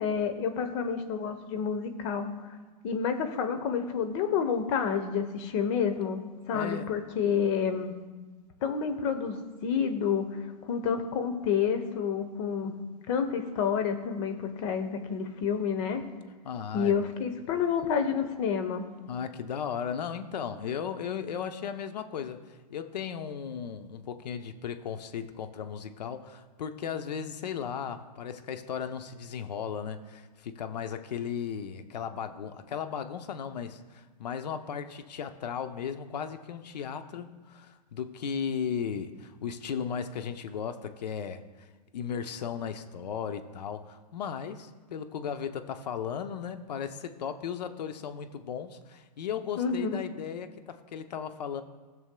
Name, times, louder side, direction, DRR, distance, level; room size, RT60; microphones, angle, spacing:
voice 1, 0.0-2.3 2.8-6.2 6.5-7.9 8.6-9.4 9.6-10.3 10.7-12.7 13.1-16.0 16.7-18.9 49.6-50.0, left 6 dB, 45° left, 7 dB, 1.0 m, -29 dB
voice 2, 6.5-7.0 16.4-17.1 19.1-41.7 41.9-51.6, left 7 dB, 75° left, 8 dB, 0.8 m, -36 dB
18.0 x 6.2 x 2.3 m, 1.3 s
hypercardioid pair, 125°, 21 cm